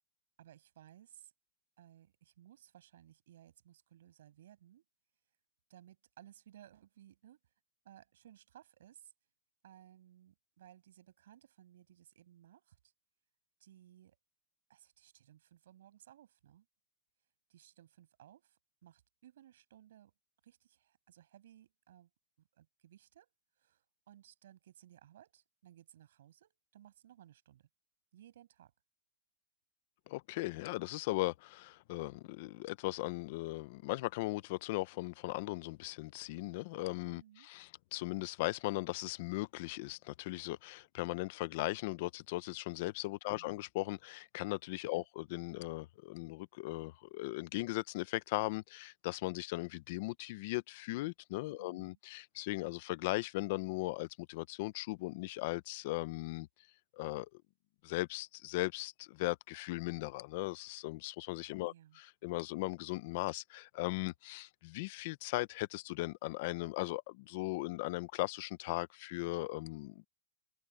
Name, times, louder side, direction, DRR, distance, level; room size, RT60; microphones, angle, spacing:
voice 1, 0.4-1.3 1.8-4.8 5.7-7.4 7.8-9.1 9.6-12.8 13.6-14.2 14.7-16.7 17.5-20.1 20.4-22.1 22.5-27.7 28.1-28.7 37.0-37.5 43.2-43.6 44.9-45.0 51.6-52.0 61.6-62.0, right 12 dB, 65° right, 8.0 m, -60 dB
voice 2, 30.1-56.5 56.9-57.4 57.8-70.1, left 20 dB, 40° left, 0.7 m, -38 dB
supercardioid pair, 165°, 0 cm